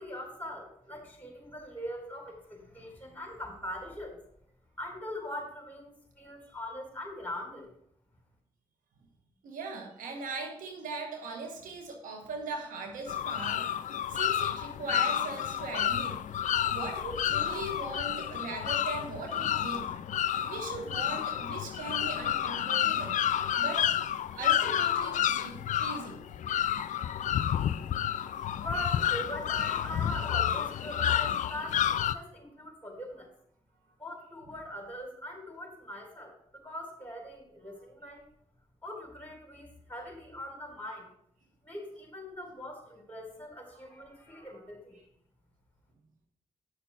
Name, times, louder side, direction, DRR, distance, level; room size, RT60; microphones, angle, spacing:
voice 1, 0.0-4.2 4.8-7.7 28.5-33.3 34.0-38.3 38.8-41.1 41.6-45.0, left 1 dB, 10° left, 1 dB, 4.0 m, -41 dB
voice 2, 9.4-13.7 14.1-16.2 16.7-19.9 20.5-23.9 24.3-26.3 43.8-44.6, right 3 dB, 80° right, 3 dB, 1.4 m, -40 dB
sound 1, 13.1-32.1, left 10 dB, 70° left, 0.4 m, -30 dB
9.5 x 6.1 x 4.2 m, 0.69 s
supercardioid pair, 40°, 14 cm